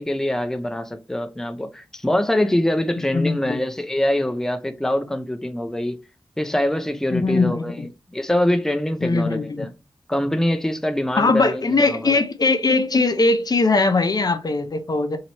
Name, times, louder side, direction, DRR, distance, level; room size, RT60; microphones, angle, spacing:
voice 1, 0.0-6.0 6.4-9.7 10.1-12.2, left 1 dB, 5° left, 0.5 m, -24 dB
voice 2, 3.1-3.6 7.1-7.6 9.0-9.7 11.1-15.2, left 3 dB, 50° left, 0.6 m, -20 dB
3.0 x 2.8 x 4.0 m
cardioid pair, 50°, 8 cm